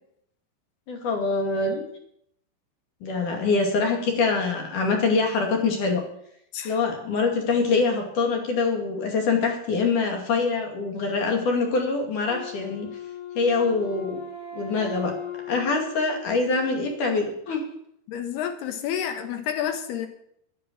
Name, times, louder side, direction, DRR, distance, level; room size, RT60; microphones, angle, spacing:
voice 1, 0.9-1.8 3.0-6.0 6.6-12.9 13.3-14.2 14.5-15.2 15.5-17.6, left 4 dB, 50° left, 3 dB, 3.3 m, -24 dB
Wind instrument woodwind instrument, 12.3-17.3, left 5 dB, 25° left, 3.0 m, -38 dB
voice 2, 18.1-20.1, left 9 dB, 70° left, 7 dB, 2.7 m, -29 dB
12.0 x 11.5 x 7.5 m, 0.72 s
omnidirectional pair, 5.7 m